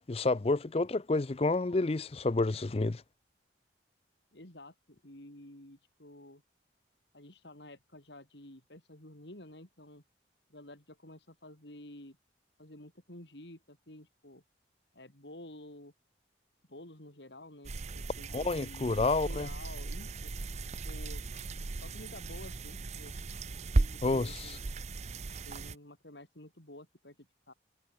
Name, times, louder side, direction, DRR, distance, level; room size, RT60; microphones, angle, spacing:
voice 1, 0.1-3.0 18.3-19.5 24.0-24.6, left 3 dB, 30° left, 0.5 m, -29 dB
voice 2, 4.3-6.4 7.1-10.0 10.5-12.2 12.6-14.4 14.9-15.9 16.7-20.3 20.8-21.3 21.8-23.1 23.7-24.7 25.4-27.1 27.5-27.6, left 1 dB, 70° left, 4.9 m, -51 dB
sound 1, 17.6-25.7, right 2 dB, 35° right, 0.6 m, -36 dB
head